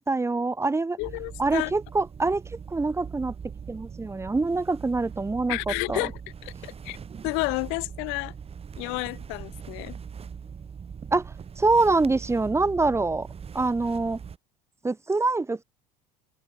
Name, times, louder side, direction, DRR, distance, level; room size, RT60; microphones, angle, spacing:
voice 1, 0.0-1.0 1.4-2.4 2.7-3.3 3.7-5.6 5.9-6.0 11.1-13.3 13.5-14.2 14.8-15.6, right 3 dB, 15° right, 1.1 m, -25 dB
voice 2, 1.0-1.7 5.5-7.0 7.2-8.3 8.8-10.0, left 33 dB, 65° left, 1.1 m, -31 dB
sound 1, 1.0-14.4, right 6 dB, 30° right, 2.7 m, -41 dB
hypercardioid pair, 85°, 20 cm